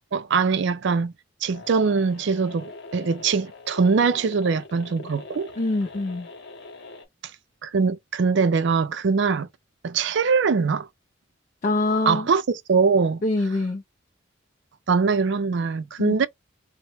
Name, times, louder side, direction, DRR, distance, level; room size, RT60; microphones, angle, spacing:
voice 1, 0.1-1.1 1.4-5.5 7.6-9.5 9.8-10.9 12.1-12.4 12.7-13.2 14.9-16.3, right 5 dB, 65° right, 0.4 m, -22 dB
sound 1, 1.5-7.0, left 2 dB, 60° left, 0.9 m, -42 dB
voice 2, 5.6-6.3 11.6-12.3 13.2-13.8 16.0-16.1, left 2 dB, 40° left, 0.4 m, -24 dB
2.9 x 2.1 x 3.0 m
head